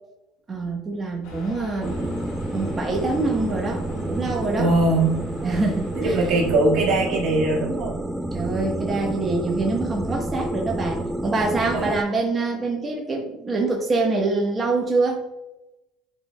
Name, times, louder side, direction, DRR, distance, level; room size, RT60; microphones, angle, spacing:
voice 1, 0.5-2.1 2.5-4.7 5.5-6.1 8.3-15.2, right 3 dB, 30° right, 0 dB, 1.3 m, -25 dB
sound 1, 1.2-6.6, equal, 80° left, 1.7 m, -40 dB
sound 2, 1.8-12.0, right 1 dB, 5° right, 0.4 m, -30 dB
voice 2, 4.6-5.6 5.9-8.0 11.7-12.0, right 2 dB, 65° right, -2 dB, 1.8 m, -21 dB
10.0 x 4.4 x 2.3 m, 0.95 s
hypercardioid pair, 80°, 0 cm